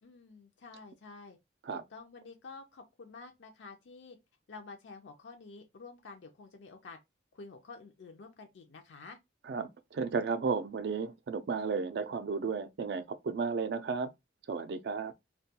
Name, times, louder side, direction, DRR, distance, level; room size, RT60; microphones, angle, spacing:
voice 1, 0.0-1.4 1.7-4.2 4.5-7.0 7.3-9.2, left 4 dB, 75° left, 0.4 m, -50 dB
voice 2, 9.5-14.1 14.5-15.1, right 5 dB, 60° right, 0.3 m, -33 dB
2.2 x 2.2 x 2.7 m
head